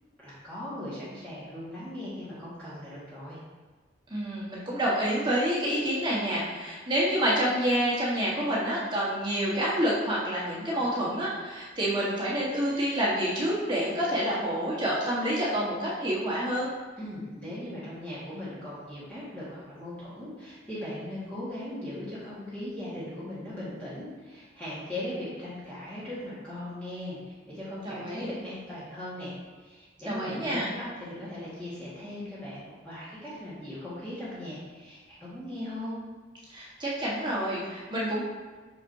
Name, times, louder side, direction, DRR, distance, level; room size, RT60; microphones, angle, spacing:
voice 1, 0.2-3.4 17.0-27.2 27.4-36.0, left 1 dB, 5° left, -12 dB, 1.5 m, -39 dB
voice 2, 4.1-16.7 27.8-28.3 30.1-30.6 36.5-38.2, equal, 25° right, -6 dB, 1.3 m, -28 dB
6.0 x 5.9 x 2.7 m, 1.4 s
head